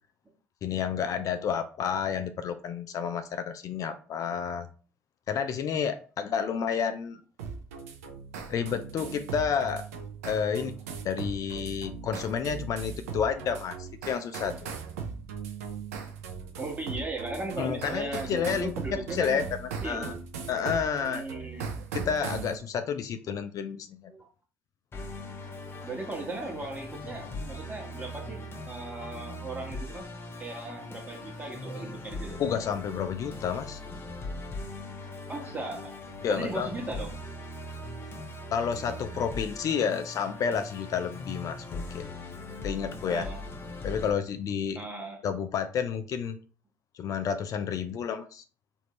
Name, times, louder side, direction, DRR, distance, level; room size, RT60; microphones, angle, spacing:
voice 1, 0.6-4.7 5.3-7.2 8.5-9.8 10.2-10.7 11.0-14.7 17.6-19.4 19.8-20.1 20.5-21.2 21.9-24.1 32.4-33.8 36.2-36.7 38.5-42.1 42.6-43.3 43.8-44.8 45.2-46.4 47.0-48.4, left 7 dB, 50° left, 9 dB, 0.3 m, -30 dB
sound 1, 7.4-22.6, right 5 dB, 85° right, 0.5 m, -39 dB
voice 2, 16.6-19.4 19.8-20.1 21.1-21.7 24.1-24.3 25.8-28.4 28.6-30.1 30.4-32.4 35.3-36.0 36.3-37.1 43.1-43.4 44.7-45.2, right 2 dB, 20° right, 0 dB, 1.2 m, -37 dB
Musical instrument, 24.9-44.1, left 2 dB, 30° left, 0.7 m, -40 dB
3.1 x 2.6 x 2.9 m, 0.39 s
hypercardioid pair, 60°, 8 cm